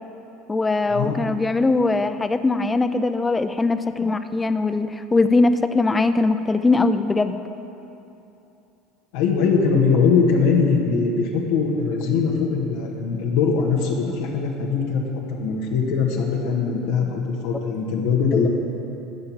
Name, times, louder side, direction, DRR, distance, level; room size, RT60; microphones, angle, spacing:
voice 1, 0.5-7.4 18.3-18.5, left 3 dB, 20° left, 10 dB, 0.7 m, -21 dB
voice 2, 9.1-15.0 15.3-18.5, left 5 dB, 70° left, -1 dB, 1.6 m, -21 dB
14.0 x 5.7 x 8.6 m, 2.9 s
hypercardioid pair, 75°, 0 cm